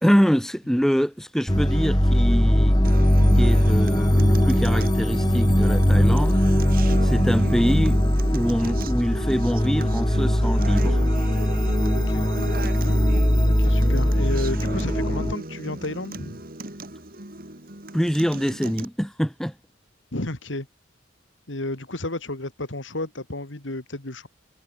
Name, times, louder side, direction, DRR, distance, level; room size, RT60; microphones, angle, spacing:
voice 1, 0.0-2.8 3.4-6.4 7.0-8.0 8.3-11.1 17.9-19.5, equal, ahead, 1.7 m, -24 dB
sound 1, 1.5-15.3, equal, 20° left, 2.5 m, -20 dB
Acoustic guitar, 2.8-18.9, right 1 dB, 50° right, 3.4 m, -35 dB
voice 2, 11.9-12.3 13.4-16.4 20.1-20.7 21.5-24.3, left 2 dB, 80° left, 2.7 m, -32 dB
head